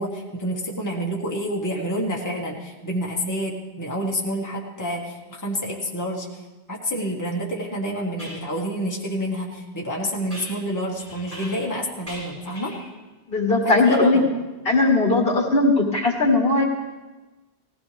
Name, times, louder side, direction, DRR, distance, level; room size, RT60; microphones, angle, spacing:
voice 1, 0.0-6.3 6.7-12.7 13.6-14.3, equal, 15° left, -3 dB, 1.7 m, -28 dB
sound 1, 7.2-7.3 8.2-8.5 10.3-11.8 12.1-12.9, equal, 35° right, 6.9 m, -40 dB
voice 2, 13.3-14.2 14.6-16.7, left 2 dB, 60° left, -1 dB, 2.2 m, -19 dB
19.0 x 16.0 x 3.5 m, 1.2 s
omnidirectional pair, 1.1 m